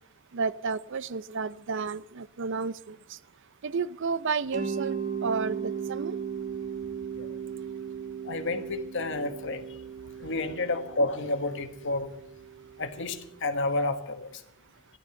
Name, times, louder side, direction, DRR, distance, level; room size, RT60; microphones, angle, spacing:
voice 1, 0.3-3.2 3.6-6.2, right 5 dB, 60° right, 0.6 m, -32 dB
Mallet percussion, 4.5-13.3, right 6 dB, 35° right, 1.3 m, -37 dB
voice 2, 8.2-9.8 10.2-12.1 12.8-14.4, left 2 dB, 60° left, 1.5 m, -30 dB
13.5 x 11.5 x 6.9 m
head